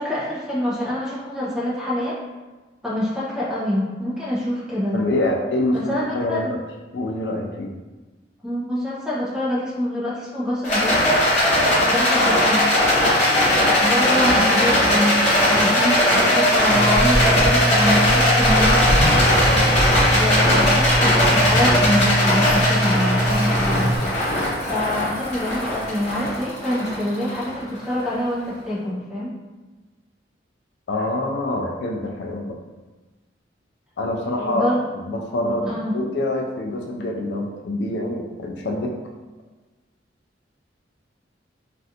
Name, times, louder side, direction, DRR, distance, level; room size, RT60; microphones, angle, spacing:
voice 1, 0.0-2.2 2.8-5.0 5.7-6.5 8.4-11.0 11.8-12.6 13.8-18.8 20.1-24.0 24.7-29.4 34.4-34.8 35.7-36.0, left 1 dB, 5° right, -9 dB, 0.8 m, -25 dB
voice 2, 4.9-6.6 6.9-7.7 19.4-19.7 30.9-32.6 34.0-38.9, left 1 dB, 60° left, 1 dB, 0.3 m, -25 dB
Rattle, 10.6-28.0, left 1 dB, 40° left, 1.1 m, -19 dB
Zipper (clothing), 16.7-24.0, right 1 dB, 45° right, 0.6 m, -22 dB
3.2 x 2.5 x 2.7 m, 1.2 s
head